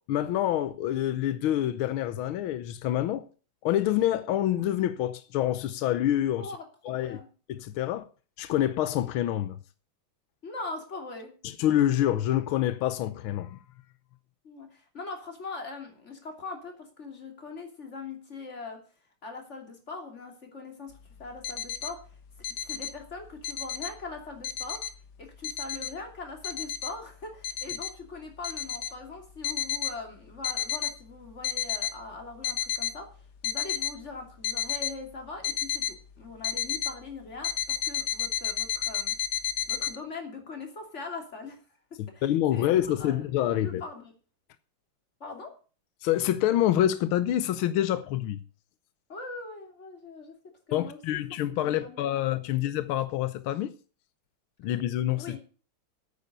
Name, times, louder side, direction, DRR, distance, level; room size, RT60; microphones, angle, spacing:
voice 1, 0.1-3.2 3.6-6.5 6.9-7.2 7.6-8.0 8.4-9.6 11.4-13.6 42.2-43.8 46.0-48.4 50.7-53.7 54.6-55.4, left 12 dB, 85° left, 1.6 m, -27 dB
voice 2, 6.4-7.2 10.4-11.3 14.4-18.8 19.2-20.9 21.2-22.2 22.5-24.8 25.2-39.1 39.7-41.6 42.1-42.2 42.5-43.3 43.6-44.1 45.2-45.5 49.1-50.3 50.7-51.0 51.4-52.6 55.2-55.4, left 3 dB, 35° left, 3.1 m, -41 dB
sound 1, 21.2-21.9 22.4-22.9 23.3-23.9 24.4-24.9 25.4-25.9 26.4-26.9 27.4-27.9 28.4-28.9 29.4-29.9 30.4-30.9 31.3-31.9 32.4-32.9 33.4-33.9 34.4-34.9 35.4-35.9 36.4-36.9 37.4-40.0, left 10 dB, 60° left, 1.4 m, -31 dB
10.0 x 8.9 x 6.7 m
omnidirectional pair, 2.3 m